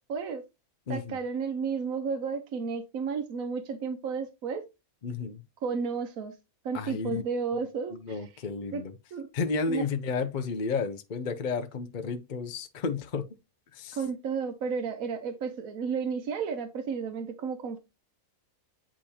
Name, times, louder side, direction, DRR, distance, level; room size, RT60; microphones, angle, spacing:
voice 1, 0.1-0.4 0.9-4.6 5.6-6.4 6.6-8.4 8.7-8.8 9.1-9.3 9.7-9.8 13.9-17.8, right 5 dB, 70° right, 1.3 m, -32 dB
voice 2, 0.9-1.2 5.0-5.4 6.7-7.2 8.0-8.9 9.3-13.2 13.7-14.0, left 4 dB, 50° left, 0.6 m, -32 dB
8.6 x 5.0 x 2.8 m
omnidirectional pair, 1.5 m